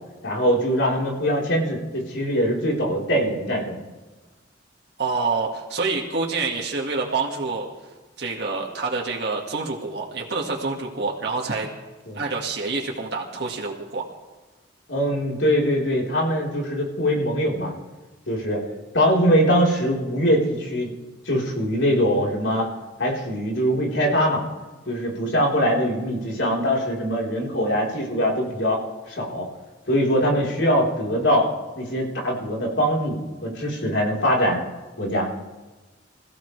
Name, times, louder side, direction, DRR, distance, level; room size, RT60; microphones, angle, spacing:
voice 1, 0.2-3.8 12.1-12.2 14.9-17.7 18.3-18.6 18.9-20.9 21.2-22.7 23.0-24.4 24.9-28.8 29.1-29.4 29.9-31.5 31.8-34.6 35.0-35.3, equal, 85° left, -2 dB, 4.1 m, -22 dB
voice 2, 5.0-7.7 8.2-11.7 12.1-14.0, right 4 dB, 60° right, -1 dB, 1.9 m, -27 dB
26.5 x 15.5 x 3.3 m, 1.2 s
head